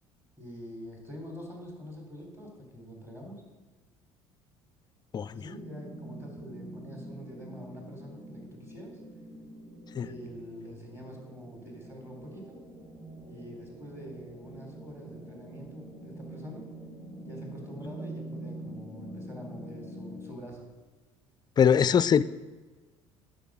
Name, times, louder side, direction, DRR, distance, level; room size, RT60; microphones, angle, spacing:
voice 1, 0.4-3.5 5.3-9.0 10.0-12.6 13.3-16.7 17.2-20.7, equal, 15° right, 1 dB, 3.7 m, -45 dB
sound 1, 5.5-20.3, right 1 dB, 30° right, 3.7 m, -45 dB
voice 2, 21.6-22.2, left 7 dB, 30° left, 17 dB, 0.4 m, -21 dB
10.0 x 6.5 x 6.3 m, 1.3 s
figure-of-eight pair, 55°, 15 cm